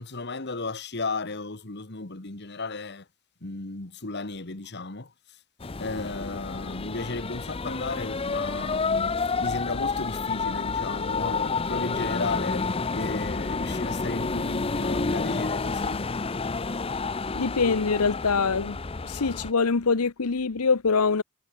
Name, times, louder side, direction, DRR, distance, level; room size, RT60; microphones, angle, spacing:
voice 1, 0.0-3.1 3.4-5.1 5.8-12.7 12.9-16.1, left 3 dB, 50° left, 1.6 m, -34 dB
sound 1, 5.6-19.5, left 4 dB, 25° left, 0.6 m, -29 dB
voice 2, 17.4-18.8 19.0-21.2, left 4 dB, 85° left, 0.9 m, -24 dB
head